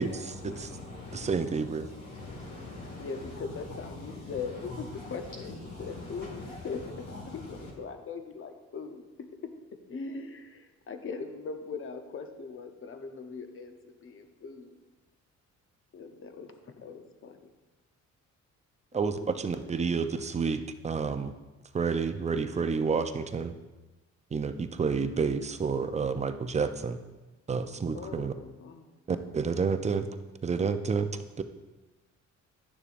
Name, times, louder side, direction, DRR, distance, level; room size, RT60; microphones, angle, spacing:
voice 1, 0.0-7.7, left 2 dB, 70° left, -4 dB, 2.1 m, -43 dB
voice 2, 1.1-1.9 18.9-21.3 21.7-23.5 24.3-27.0 27.5-28.3 29.1-30.1 30.4-31.1 31.4-31.5, right 5 dB, 25° right, 9 dB, 0.5 m, -29 dB
voice 3, 3.0-9.5 9.9-14.8 15.9-17.5 19.2-19.6 27.9-29.0, left 5 dB, 45° left, 6 dB, 0.8 m, -41 dB
11.0 x 6.7 x 2.6 m, 1.1 s
cardioid pair, 90°, 30 cm